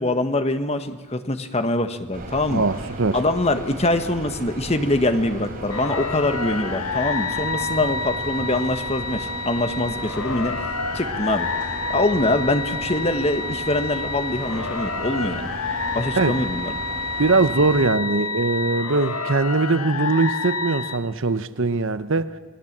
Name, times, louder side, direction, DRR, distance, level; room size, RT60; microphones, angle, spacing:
voice 1, 0.0-2.6 3.1-10.5 10.9-11.5 11.9-15.5 15.9-16.7, left 2 dB, 30° left, 1.4 m, -24 dB
sound 1, 2.1-17.8, right 2 dB, 40° right, 3.8 m, -36 dB
voice 2, 2.5-3.2 16.1-16.4 17.2-22.3, right 3 dB, 60° right, 0.9 m, -21 dB
sound 2, 5.7-21.0, left 4 dB, 85° left, 1.5 m, -29 dB
29.0 x 20.0 x 7.5 m
head